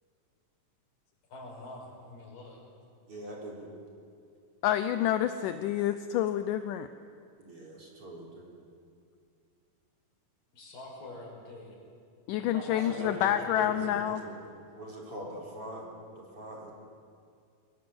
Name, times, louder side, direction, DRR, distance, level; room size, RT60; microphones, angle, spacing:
voice 1, 1.3-2.6 10.5-11.8 12.4-14.1, left 2 dB, 60° left, -1 dB, 7.3 m, -45 dB
voice 2, 3.1-3.7 7.4-8.5 12.7-14.4 14.7-15.9 16.1-16.7, right 1 dB, 35° right, -2 dB, 4.5 m, -42 dB
voice 3, 4.6-6.9 12.3-14.2, left 11 dB, 75° left, 10 dB, 2.0 m, -28 dB
29.5 x 22.0 x 8.0 m, 2.3 s
omnidirectional pair, 4.4 m